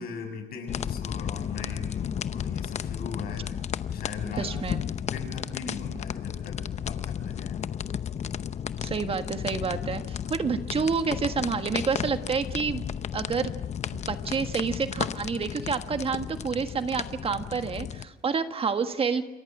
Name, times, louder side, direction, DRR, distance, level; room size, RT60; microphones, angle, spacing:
voice 1, 0.0-3.6 3.9-4.5 5.0-7.7, left 5 dB, 65° left, 5 dB, 6.8 m, -39 dB
sound 1, 0.7-18.1, left 8 dB, 40° left, 0.8 m, -33 dB
voice 2, 4.4-4.8 8.8-12.8 13.1-13.5 13.9-19.2, right 5 dB, 35° right, 8 dB, 1.5 m, -29 dB
29.0 x 23.5 x 6.0 m, 1.1 s
cardioid pair, 110°, 17 cm